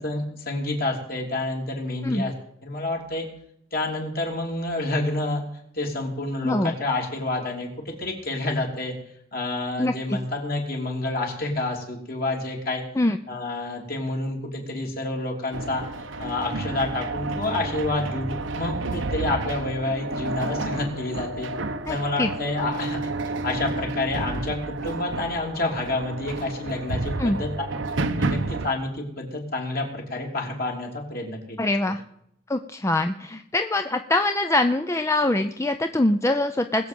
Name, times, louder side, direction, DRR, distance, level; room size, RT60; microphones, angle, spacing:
voice 1, 0.0-2.3 2.6-3.3 3.7-5.4 5.7-8.9 9.3-12.8 13.3-15.8 16.2-21.5 21.9-23.0 23.4-27.5 28.1-31.6, left 2 dB, 50° left, 0 dB, 3.3 m, -28 dB
voice 2, 6.4-6.7 9.8-10.2 13.0-13.2 21.9-22.3 27.2-27.4 31.6-32.0 32.5-36.9, left 2 dB, 15° left, 7 dB, 0.5 m, -24 dB
sound 1, 15.5-28.7, right 2 dB, 75° right, 0.9 m, -30 dB
20.5 x 7.8 x 5.3 m, 0.74 s
head